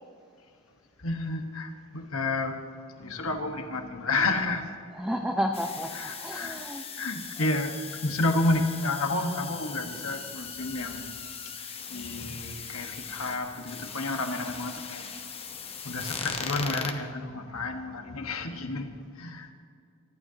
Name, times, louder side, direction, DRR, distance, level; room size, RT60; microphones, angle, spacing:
voice 1, 1.0-4.7 5.9-6.6 7.0-11.1 11.9-15.1 15.8-19.5, left 2 dB, 80° left, 1.5 m, -31 dB
voice 2, 4.9-6.8, equal, 5° right, 0.6 m, -31 dB
sound 1, 5.5-16.9, left 6 dB, 30° left, 1.1 m, -39 dB
24.0 x 14.5 x 2.9 m
head